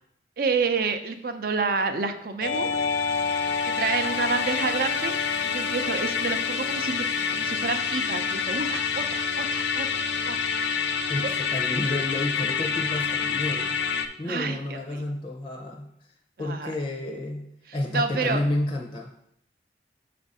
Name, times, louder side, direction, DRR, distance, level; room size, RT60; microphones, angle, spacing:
voice 1, 0.4-2.7 3.7-5.1 5.4-10.0 10.3-10.4 14.2-15.0 16.4-16.7 17.9-18.4, right 4 dB, 55° right, 8 dB, 0.5 m, -29 dB
Musical instrument, 2.4-14.1, left 6 dB, 80° left, 0.4 m, -27 dB
voice 2, 11.1-13.8 14.2-15.9 16.4-17.5 17.7-19.1, left 1 dB, 30° left, 0 dB, 0.6 m, -30 dB
7.1 x 2.5 x 5.3 m, 0.74 s
head